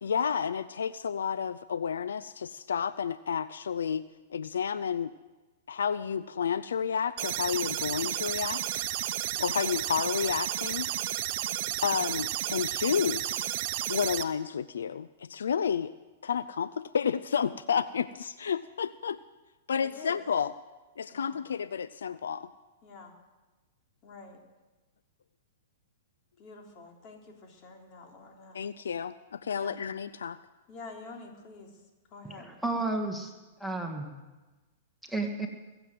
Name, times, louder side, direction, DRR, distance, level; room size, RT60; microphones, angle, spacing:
voice 1, 0.0-4.0 4.3-5.1 5.7-8.8 9.4-10.9 11.8-13.5 13.9-15.9 16.2-19.2 19.7-20.5 21.0-22.5 28.5-30.4, left 7 dB, 80° left, 16 dB, 0.4 m, -31 dB
sound 1, 7.2-14.2, right 13 dB, 50° right, 0.9 m, -32 dB
voice 2, 19.8-20.2 21.1-21.3 22.8-23.1 24.0-24.4 26.4-28.6 29.5-29.8 30.7-31.7 32.1-32.5, left 3 dB, 40° left, 1 dB, 3.5 m, -47 dB
voice 3, 32.2-33.3 33.6-34.1 35.1-35.5, right 2 dB, ahead, 2 dB, 1.9 m, -32 dB
22.0 x 7.9 x 7.8 m, 1.2 s
hypercardioid pair, 120°, 0 cm